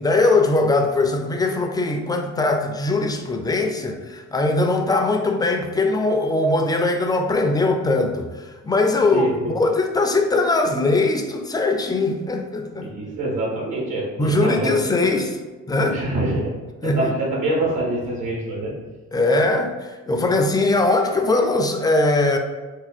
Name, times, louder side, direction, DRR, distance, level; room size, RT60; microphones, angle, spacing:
voice 1, 0.0-12.9 14.2-15.4 15.7-16.0 16.8-17.1 19.1-22.4, left 2 dB, 15° left, 3 dB, 0.4 m, -21 dB
voice 2, 9.1-9.6 12.8-14.7 15.9-16.5 16.8-18.7, right 1 dB, 75° right, -4 dB, 1.3 m, -25 dB
2.7 x 2.3 x 4.0 m, 1.3 s
cardioid pair, 90°, 30 cm